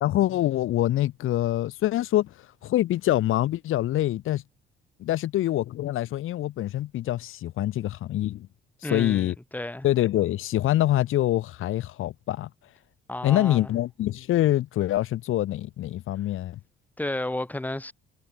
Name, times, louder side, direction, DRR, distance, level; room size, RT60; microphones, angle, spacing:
voice 1, 0.0-4.4 5.0-8.5 8.8-9.3 9.8-12.5 13.2-16.6, left 14 dB, 75° left, 2.3 m, -25 dB
voice 2, 8.8-9.9 13.1-13.6 17.0-17.9, left 1 dB, 10° left, 5.2 m, -32 dB
cardioid pair, 120°, 21 cm